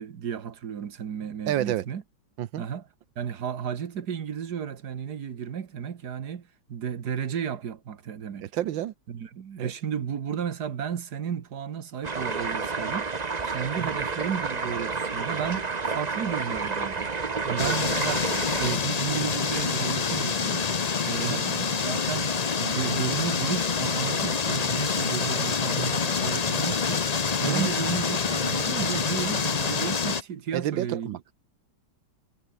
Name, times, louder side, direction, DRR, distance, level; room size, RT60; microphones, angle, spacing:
voice 1, 0.0-2.0 2.6-2.9 3.2-8.4 9.1-17.1 17.4-18.2 18.6-20.6 21.0-27.0 27.4-31.1, right 8 dB, 55° right, 1.9 m, -33 dB
voice 2, 1.5-1.8 2.4-2.6 8.5-8.9 9.6-9.7 13.8-13.9 17.6-17.8 21.2-21.4 27.4-27.7 30.5-31.2, right 12 dB, 75° right, 1.6 m, -29 dB
sound 1, 12.0-18.8, right 4 dB, 25° right, 1.0 m, -30 dB
sound 2, 17.6-30.2, left 5 dB, 80° left, 0.3 m, -27 dB
omnidirectional pair, 2.2 m